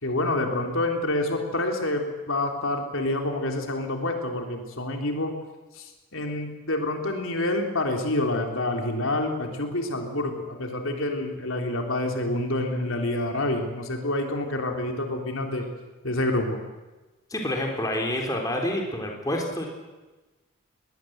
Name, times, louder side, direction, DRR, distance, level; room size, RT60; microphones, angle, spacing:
voice 1, 0.0-5.3 5.7-15.7 16.0-16.6, left 1 dB, 75° left, 3 dB, 3.3 m, -27 dB
voice 2, 17.3-19.7, left 1 dB, 15° left, 1 dB, 3.5 m, -28 dB
22.5 x 19.0 x 7.9 m, 1.2 s
head